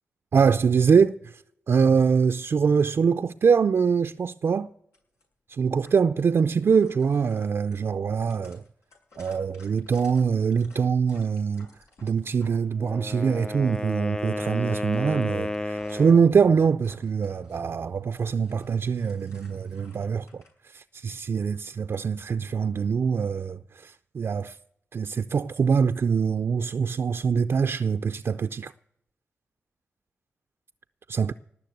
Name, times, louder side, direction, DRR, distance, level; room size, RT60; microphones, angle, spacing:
voice 1, 0.3-1.4 1.7-4.7 5.5-8.6 9.2-11.7 12.0-24.6 24.9-28.7 31.1-31.3, right 6 dB, 60° right, 0.5 m, -24 dB
sound 1, 4.9-5.2 5.8-6.2 6.6-12.5 12.9-13.9 14.4-14.6 14.9-17.6 17.9-20.5, left 2 dB, 80° left, 6.6 m, -54 dB
Wind instrument woodwind instrument, 12.7-16.3, left 1 dB, 15° left, 0.5 m, -32 dB
19.0 x 6.6 x 8.2 m
cardioid pair, 45°, 5 cm